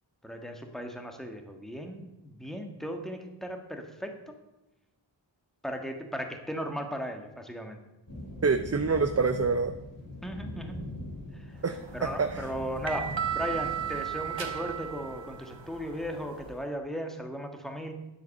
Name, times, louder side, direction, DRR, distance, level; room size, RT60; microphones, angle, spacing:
voice 1, 0.2-4.1 5.6-7.8 10.2-10.8 11.4-11.5 11.9-17.9, equal, ahead, 4 dB, 1.6 m, -36 dB
sound 1, 8.1-14.7, left 1 dB, 45° left, 3.6 m, -42 dB
voice 2, 8.4-9.8 11.6-12.5, right 4 dB, 35° right, 8 dB, 0.6 m, -27 dB
sound 2, 11.8-16.6, right 8 dB, 80° right, 1.1 m, -36 dB
10.0 x 7.9 x 6.5 m, 0.97 s
wide cardioid pair, 85°, 45 cm